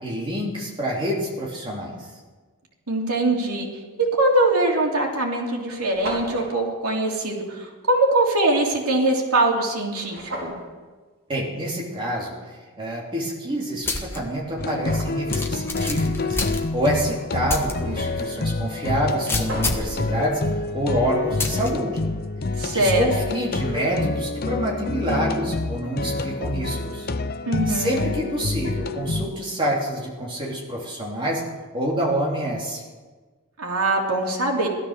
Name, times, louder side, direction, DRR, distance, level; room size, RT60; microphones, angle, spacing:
voice 1, 0.0-2.1 11.3-12.3 12.8-16.4 16.7-20.4 20.7-22.1 22.7-27.1 27.7-31.4 31.7-32.8, right 1 dB, 25° right, -3 dB, 3.2 m, -27 dB
voice 2, 2.9-3.7 4.0-10.6 22.6-23.1 27.5-28.1 33.6-34.7, right 2 dB, 90° right, 0 dB, 3.0 m, -22 dB
sound 1, 4.2-4.4 5.1-5.2 5.4-5.5 5.7-6.5 10.0-10.6 13.6-13.7 14.2-15.4 18.7-18.8 19.0-20.0, right 1 dB, 65° right, 4.9 m, -35 dB
sound 2, 13.8-14.2 14.6-14.7 15.3-17.0 17.5-17.7 18.2-18.3 19.3-20.0 21.4-21.7, left 3 dB, 10° left, 1.3 m, -27 dB
sound 3, 14.6-29.3, left 3 dB, 45° left, 0.7 m, -27 dB
16.5 x 13.0 x 6.6 m, 1.3 s
head